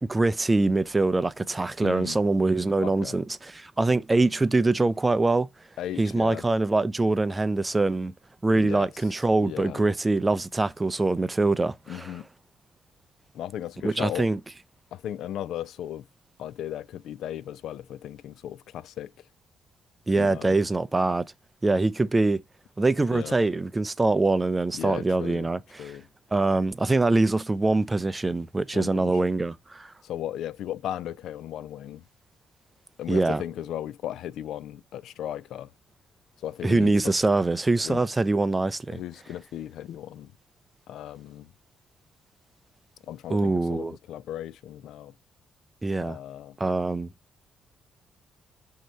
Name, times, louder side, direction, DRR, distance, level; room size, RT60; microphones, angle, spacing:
voice 1, 0.0-5.5 6.0-8.1 8.4-12.2 13.8-14.4 20.1-21.3 21.6-22.4 22.8-25.9 26.3-29.9 33.1-33.4 36.6-39.0 43.3-44.0 45.8-46.2 46.6-47.1, right 2 dB, 20° right, 0.4 m, -24 dB
voice 2, 1.8-2.2 2.8-3.2 5.8-6.4 8.5-8.9 9.4-9.8 11.9-12.3 13.3-14.3 14.9-16.0 16.4-19.1 20.1-20.6 23.1-23.3 24.7-25.5 25.8-26.0 28.7-29.2 30.0-32.0 33.0-35.7 36.4-36.9 37.9-38.0 38.9-40.3 40.9-41.5 43.1-45.1 46.0-46.6, left 11 dB, 80° left, 0.3 m, -36 dB
6.0 x 2.8 x 5.6 m
cardioid pair, 90°, 0 cm